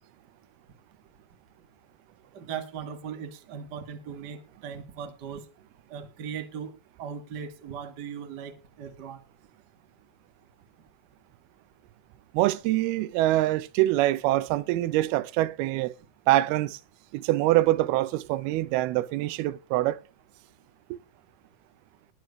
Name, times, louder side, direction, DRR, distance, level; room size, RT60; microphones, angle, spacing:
voice 1, 2.3-5.5 5.9-6.7 7.0-9.2, right 7 dB, 40° right, 1.5 m, -38 dB
voice 2, 12.3-15.9 16.3-16.8 17.1-20.0, right 16 dB, 85° right, 2.6 m, -24 dB
20.5 x 7.5 x 3.1 m
omnidirectional pair, 4.4 m